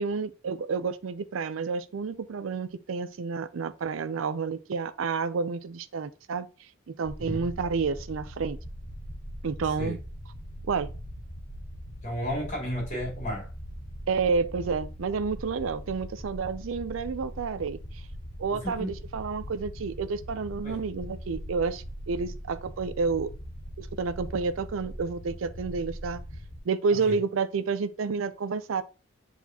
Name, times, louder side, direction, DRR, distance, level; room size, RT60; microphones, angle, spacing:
voice 1, 0.0-6.5 6.9-8.6 9.4-10.0 10.7-10.9 14.1-18.0 18.4-23.3 23.8-26.2 26.7-28.8, right 5 dB, 85° right, 0.4 m, -30 dB
sound 1, 7.0-26.6, equal, 80° left, 2.0 m, -41 dB
voice 2, 12.0-13.5 18.5-18.9 20.6-20.8 27.1-27.2, equal, 35° left, 3.8 m, -33 dB
8.1 x 4.2 x 2.8 m
head